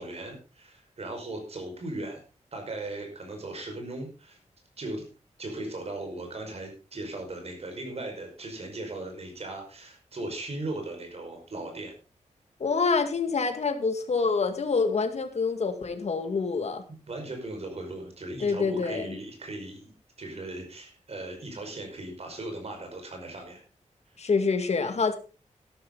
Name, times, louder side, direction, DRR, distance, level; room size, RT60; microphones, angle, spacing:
voice 1, 0.0-2.2 2.5-4.4 4.8-5.1 5.4-11.9 17.1-23.6, right 2 dB, 55° right, 3 dB, 5.5 m, -38 dB
voice 2, 12.6-16.8 18.4-19.0 24.2-25.1, left 4 dB, 60° left, 7 dB, 2.0 m, -26 dB
13.0 x 12.0 x 4.0 m, 0.33 s
wide cardioid pair, 135°, 13 cm